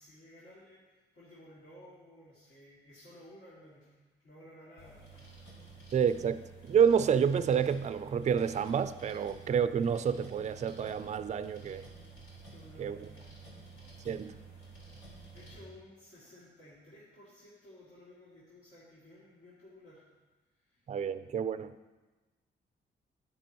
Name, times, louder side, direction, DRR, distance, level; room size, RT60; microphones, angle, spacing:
voice 1, 0.0-3.9 4.2-5.0 5.6-5.7 12.5-13.3 15.3-20.0 20.5-20.9, left 1 dB, 70° left, 2.7 m, -55 dB
sound 1, 4.8-15.6, right 3 dB, 85° left, 2.9 m, -51 dB
voice 2, 5.9-11.8 12.8-13.0 14.1-14.3 20.9-21.9, right 7 dB, 35° right, 0.4 m, -29 dB
9.8 x 9.7 x 3.0 m
cardioid pair, 80°, 20 cm